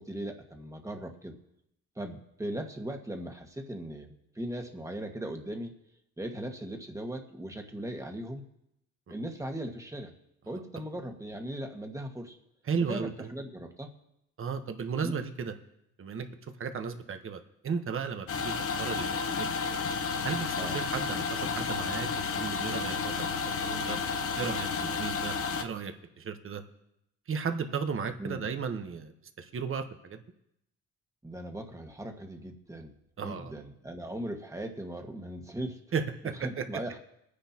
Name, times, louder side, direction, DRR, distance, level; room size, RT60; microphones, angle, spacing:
voice 1, 0.0-1.4 1.9-5.7 6.2-8.5 9.1-10.1 10.4-12.4 12.9-13.9 15.0-15.3 20.6-20.8 28.2-28.5 31.2-35.8 36.3-37.0, right 1 dB, 10° right, 3 dB, 1.7 m, -38 dB
voice 2, 12.7-13.3 14.4-15.5 16.0-16.3 16.6-18.5 18.8-19.5 20.2-23.1 23.6-24.0 24.4-26.6 27.3-29.1 29.4-30.2 33.2-33.5 35.9-36.6, right 6 dB, 45° right, 7 dB, 1.2 m, -34 dB
sound 1, 18.3-25.6, left 5 dB, 45° left, 0.9 m, -32 dB
21.5 x 9.9 x 2.9 m, 0.81 s
cardioid pair, 90°, 30 cm